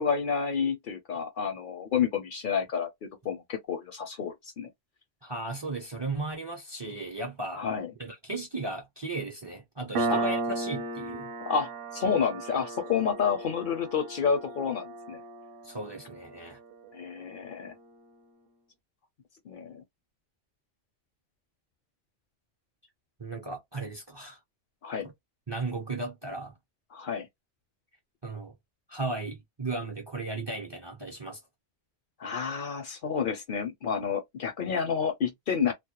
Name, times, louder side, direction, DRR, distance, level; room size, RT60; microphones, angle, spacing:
voice 1, 0.0-2.9 3.2-4.7 7.5-7.9 10.1-10.2 11.4-15.2 16.9-17.8 19.5-19.8 24.8-25.1 26.9-27.3 32.2-35.7, left 6 dB, 60° left, 0.6 m, -29 dB
voice 2, 5.2-7.6 8.0-11.3 15.6-16.6 23.2-24.4 25.5-26.5 28.2-28.5 28.9-31.4, right 2 dB, 35° right, 0.5 m, -36 dB
Piano, 10.0-17.1, right 3 dB, 65° right, 0.7 m, -35 dB
2.1 x 2.1 x 2.8 m
omnidirectional pair, 1.1 m